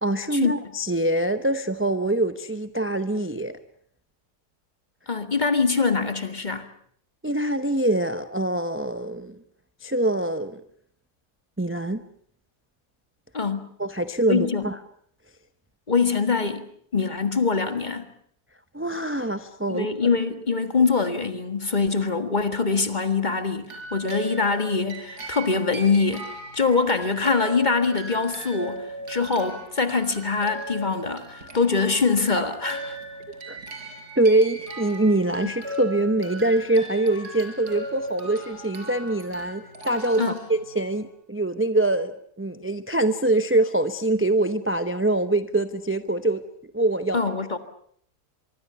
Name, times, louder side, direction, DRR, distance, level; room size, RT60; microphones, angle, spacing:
voice 1, 0.0-3.6 7.2-9.4 9.8-10.6 11.6-12.0 13.8-14.8 18.7-20.1 33.5-33.6 34.2-46.4 46.7-47.3, right 2 dB, 10° right, 0.6 m, -24 dB
voice 2, 5.1-6.7 13.3-13.7 14.3-14.7 15.9-16.7 16.9-18.1 19.7-26.3 26.5-33.0 40.2-40.4 47.1-47.6, left 4 dB, 30° left, 1.8 m, -24 dB
sound 1, 23.6-41.1, right 1 dB, 80° right, 5.9 m, -38 dB
24.5 x 24.0 x 7.0 m
omnidirectional pair, 1.7 m